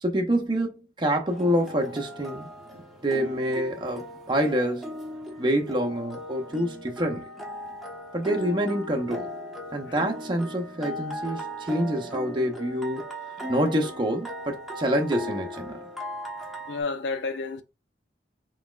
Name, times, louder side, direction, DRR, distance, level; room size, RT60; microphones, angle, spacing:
voice 1, 0.0-2.5 3.0-4.9 5.4-7.2 8.1-9.3 9.7-13.0 13.5-15.9, equal, 25° right, 0.7 m, -27 dB
sound 1, 1.3-16.8, equal, ahead, 1.0 m, -38 dB
voice 2, 16.7-17.6, left 4 dB, 85° left, 0.7 m, -31 dB
4.1 x 4.0 x 2.4 m
head